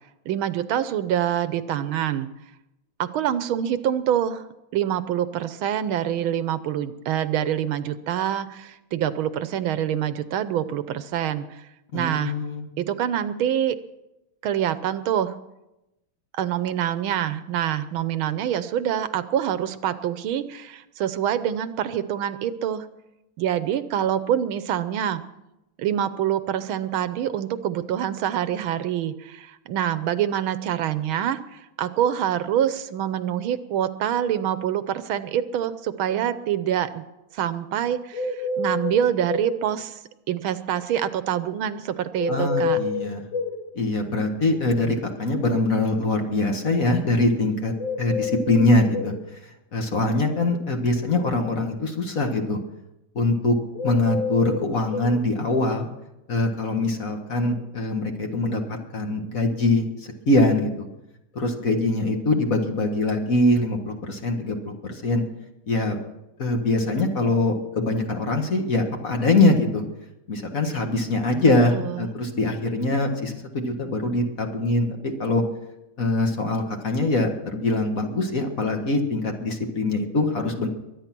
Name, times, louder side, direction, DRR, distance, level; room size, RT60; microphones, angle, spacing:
voice 1, 0.2-2.3 3.0-4.5 4.7-11.7 11.9-12.3 12.8-13.8 14.4-15.3 16.3-22.9 23.4-25.2 25.8-37.0 37.3-40.0 40.3-42.8 71.5-72.1, right 10 dB, 80° right, 13 dB, 1.6 m, -26 dB
voice 2, 11.9-12.7 42.3-43.2 43.8-47.7 48.0-49.1 49.7-52.6 53.2-53.6 53.8-55.9 56.3-60.9 61.3-65.2 65.7-66.0 66.4-69.8 70.3-75.4 76.0-80.7, left 2 dB, 45° left, 3 dB, 2.0 m, -23 dB
sound 1, 38.1-39.5 42.2-43.6 47.8-49.2 53.7-55.1, left 4 dB, 65° left, 2.5 m, -28 dB
23.0 x 9.8 x 6.0 m, 0.93 s
omnidirectional pair, 2.3 m